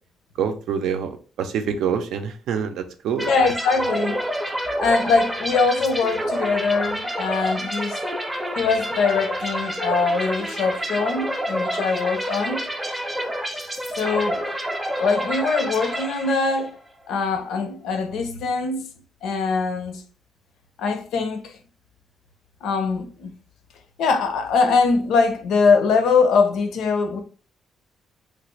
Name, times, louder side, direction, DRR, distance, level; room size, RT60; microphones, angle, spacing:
voice 1, 0.4-3.3, right 7 dB, 80° right, 0.5 m, -26 dB
sound 1, 3.2-16.7, equal, 10° right, 0.5 m, -28 dB
voice 2, 3.3-4.2 4.8-8.0 8.6-12.6 14.0-14.4 15.0-16.7 17.1-18.9 19.2-20.0 20.8-21.6 22.6-23.3 24.0-27.2, left 4 dB, 85° left, 0.6 m, -22 dB
3.3 x 2.4 x 3.0 m
cardioid pair, 165°, 0 cm